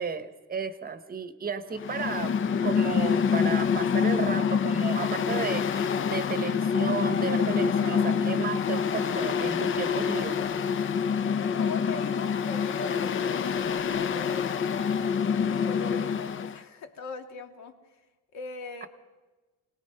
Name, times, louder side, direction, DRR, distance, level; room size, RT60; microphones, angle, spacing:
voice 1, 0.0-2.3 2.6-10.4 18.8-18.9, right 6 dB, 30° right, 11 dB, 1.0 m, -33 dB
Mechanical fan, 1.7-16.6, left 6 dB, 40° left, 0.7 m, -26 dB
voice 2, 11.6-18.1 18.3-18.9, left 4 dB, 60° left, 5 dB, 2.2 m, -41 dB
26.5 x 19.0 x 5.6 m, 1.2 s
cardioid pair, 145°, 31 cm